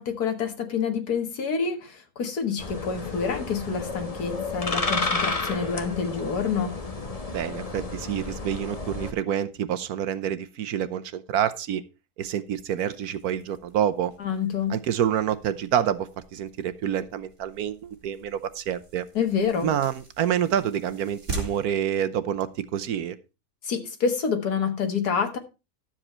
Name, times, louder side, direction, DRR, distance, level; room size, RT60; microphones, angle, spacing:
voice 1, 0.0-6.7 14.2-14.7 19.2-19.7 23.6-25.4, left 6 dB, 80° left, 2.1 m, -27 dB
sound 1, 2.6-9.1, left 3 dB, 25° left, 1.2 m, -31 dB
voice 2, 7.3-11.8 12.2-14.1 14.7-19.0 19.6-23.2, right 9 dB, 75° right, 1.3 m, -27 dB
sound 2, 12.7-22.8, right 3 dB, 50° right, 3.0 m, -43 dB
12.0 x 7.6 x 4.3 m
omnidirectional pair, 1.6 m